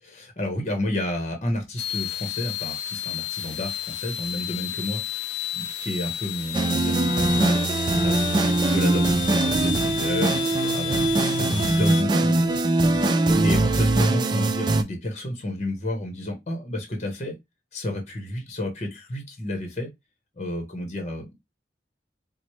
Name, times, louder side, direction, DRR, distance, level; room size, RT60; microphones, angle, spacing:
voice 1, 0.0-7.4 8.0-12.8 13.4-17.3 17.7-19.9 20.4-21.3, left 1 dB, 40° left, 0.8 m, -31 dB
sound 1, 1.8-12.0, left 12 dB, 75° left, 0.3 m, -32 dB
sound 2, 6.5-14.8, right 2 dB, 25° right, 0.3 m, -22 dB
4.2 x 2.0 x 3.0 m
head